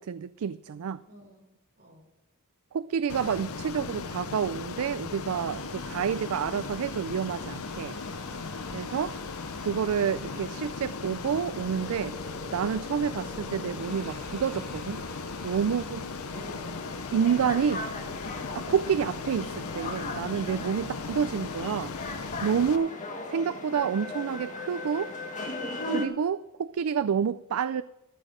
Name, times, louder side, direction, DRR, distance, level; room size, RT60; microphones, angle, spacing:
voice 1, 0.0-1.0 2.7-7.9 8.7-9.1 9.6-12.1 12.5-15.0 15.4-16.1 17.1-17.9 18.5-21.9 22.4-22.9 23.3-25.1 25.9-27.8, right 7 dB, 80° right, 15 dB, 0.4 m, -29 dB
voice 2, 1.1-1.4 1.8-2.1 8.1-8.5 16.3-16.9 25.8-26.1, equal, 45° right, 1 dB, 3.5 m, -50 dB
Ocean, 3.1-22.8, left 4 dB, 75° left, 0.8 m, -37 dB
sound 1, 5.5-16.5, right 1 dB, ahead, 4.0 m, -47 dB
sound 2, 16.3-26.1, left 2 dB, 35° left, 1.8 m, -37 dB
14.0 x 9.0 x 5.0 m, 0.94 s
head